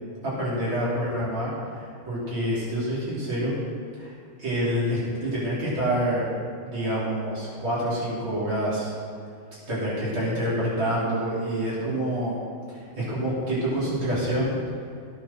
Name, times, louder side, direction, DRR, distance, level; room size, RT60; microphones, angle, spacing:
voice 1, 0.2-3.5 4.0-4.1 4.4-6.3 6.6-8.9 9.7-12.4 12.7-14.6, equal, 70° right, -9 dB, 5.4 m, -27 dB
17.0 x 8.4 x 6.5 m, 2.5 s
omnidirectional pair, 2.3 m